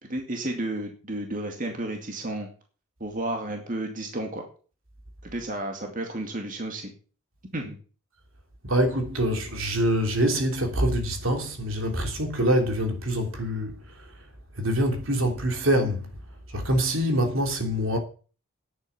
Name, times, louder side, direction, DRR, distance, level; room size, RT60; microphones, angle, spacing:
voice 1, 0.0-2.5 3.0-4.5 5.2-6.9 7.5-7.8, right 1 dB, 40° right, 2.3 m, -32 dB
voice 2, 8.6-14.1 14.6-16.1 16.5-18.0, equal, 70° right, 3.2 m, -25 dB
10.5 x 9.1 x 7.1 m
head